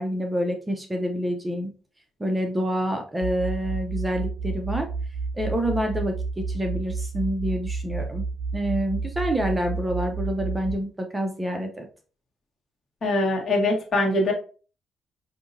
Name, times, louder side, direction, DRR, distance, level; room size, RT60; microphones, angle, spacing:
voice 1, 0.0-1.7 2.2-4.9 5.3-8.2 8.5-11.9, equal, 15° right, 4 dB, 0.6 m, -27 dB
sound 1, 3.2-10.8, right 4 dB, 85° right, 0.4 m, -31 dB
voice 2, 13.0-14.3, left 2 dB, 45° left, 0 dB, 1.4 m, -22 dB
5.1 x 2.7 x 2.7 m, 0.37 s
cardioid pair, 90°, 0 cm